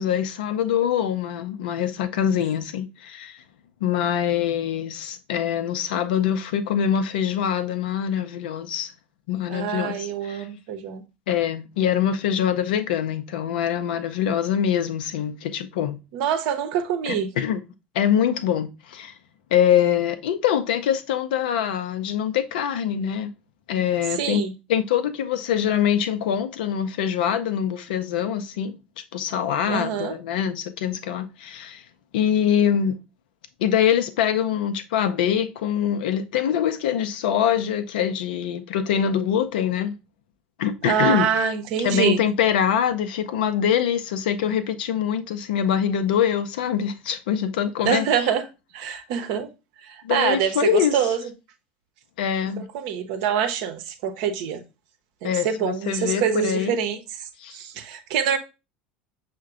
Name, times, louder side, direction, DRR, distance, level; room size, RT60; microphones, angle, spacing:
voice 1, 0.0-3.4 3.8-8.9 9.3-10.5 11.3-16.0 17.1-17.6 17.9-19.1 19.5-23.3 23.7-24.4 24.7-28.8 29.1-31.8 32.1-33.0 33.6-39.9 40.6-41.3 41.8-48.1 50.0-51.0 52.2-52.7 55.2-56.8 57.4-57.6, left 9 dB, 65° left, 0.5 m, -24 dB
voice 2, 9.5-11.0 16.1-17.3 24.2-24.5 29.7-30.2 40.8-42.2 47.8-48.4 48.7-49.5 49.8-51.3 52.6-54.6 55.2-58.4, right 8 dB, 60° right, 0.7 m, -25 dB
6.4 x 2.2 x 3.6 m
figure-of-eight pair, 70°, 5 cm